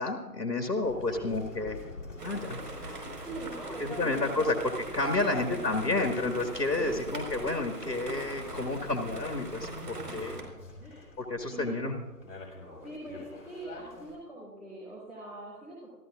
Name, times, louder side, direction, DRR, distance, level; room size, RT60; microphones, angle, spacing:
voice 1, 0.0-1.8 2.2-2.6 3.8-10.4 11.2-12.0, left 2 dB, 90° left, 3 dB, 2.0 m, -30 dB
sound 1, 0.8-14.1, left 2 dB, 50° left, 6.1 m, -47 dB
sound 2, 2.2-10.4, right 3 dB, 75° right, 4.9 m, -42 dB
voice 2, 3.2-4.6 5.0-5.7 6.8-7.0 10.0-11.2 11.5-11.9 12.8-15.9, right 2 dB, ahead, -14 dB, 2.4 m, -43 dB
27.5 x 15.0 x 2.5 m, 1.3 s
figure-of-eight pair, 155°, 48 cm